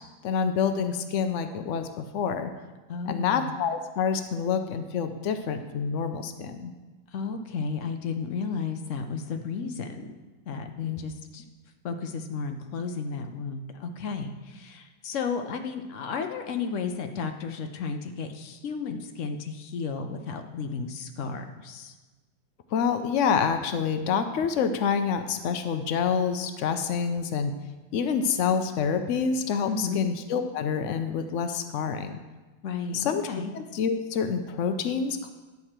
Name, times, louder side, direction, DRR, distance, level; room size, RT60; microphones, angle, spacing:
voice 1, 0.2-2.5 3.1-6.7 10.8-11.0 22.7-27.5 27.9-32.2 32.9-33.3 33.5-35.3, left 6 dB, 85° left, 8 dB, 0.6 m, -27 dB
voice 2, 2.9-3.6 7.1-10.1 10.5-11.4 11.8-21.9 29.7-30.0 32.6-33.5, left 5 dB, 60° left, 6 dB, 0.8 m, -33 dB
10.5 x 4.8 x 7.4 m, 1.2 s
omnidirectional pair, 2.0 m